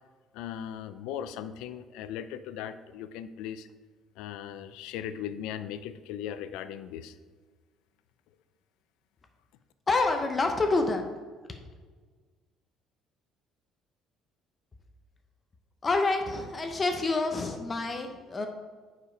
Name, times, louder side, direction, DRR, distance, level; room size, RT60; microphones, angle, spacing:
voice 1, 0.3-3.7 4.2-7.1, left 9 dB, 90° left, 12 dB, 0.5 m, -38 dB
voice 2, 9.9-11.0 15.8-18.5, left 3 dB, 20° left, 4 dB, 0.6 m, -27 dB
7.2 x 5.1 x 5.0 m, 1.5 s
cardioid pair, 160°, 0 cm